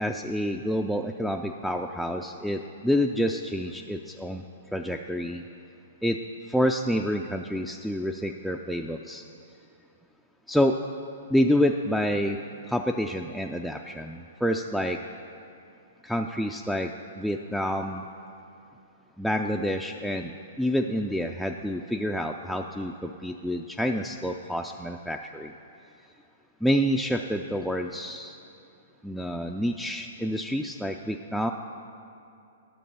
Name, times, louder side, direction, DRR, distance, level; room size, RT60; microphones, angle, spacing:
voice 1, 0.0-4.4 4.7-5.4 6.0-6.2 6.5-9.2 10.5-10.8 11.3-12.4 12.7-15.0 16.0-18.0 19.2-25.5 26.6-28.4 29.0-31.5, equal, ahead, 1 dB, 0.3 m, -28 dB
11.0 x 6.6 x 5.4 m, 2.6 s
figure-of-eight pair, 115°, 0 cm